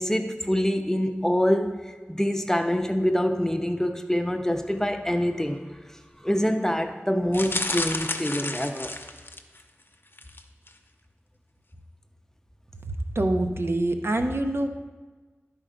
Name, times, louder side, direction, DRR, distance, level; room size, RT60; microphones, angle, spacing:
voice 1, 0.0-1.8 2.1-5.6 6.2-8.9, equal, 10° left, 6 dB, 0.6 m, -25 dB
sound 1, 7.3-9.6 10.1-10.4 10.7-10.8, left 2 dB, 50° left, 0.7 m, -31 dB
voice 2, 12.8-14.7, right 1 dB, 60° right, 6 dB, 0.7 m, -25 dB
11.5 x 4.5 x 5.1 m, 1.3 s
wide cardioid pair, 50°, 5 cm